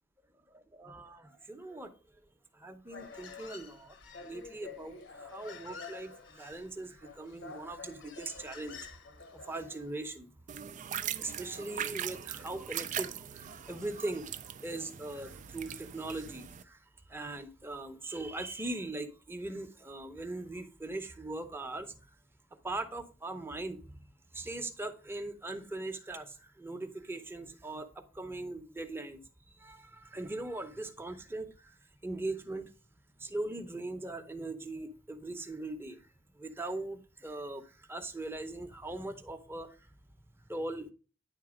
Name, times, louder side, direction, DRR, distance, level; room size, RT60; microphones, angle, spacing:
voice 1, 0.5-1.9 2.6-3.9 4.2-8.8 9.3-10.3 11.0-16.8 17.1-21.9 22.6-23.8 24.3-29.2 29.6-31.7 32.0-32.7 33.2-36.0 36.4-39.7 40.5-40.9, right 2 dB, 10° right, 0.7 m, -40 dB
Human voice, 2.9-9.9, left 4 dB, 65° left, 1.0 m, -49 dB
sound 1, 10.5-16.6, right 9 dB, 40° right, 0.4 m, -40 dB
9.7 x 3.9 x 4.9 m
head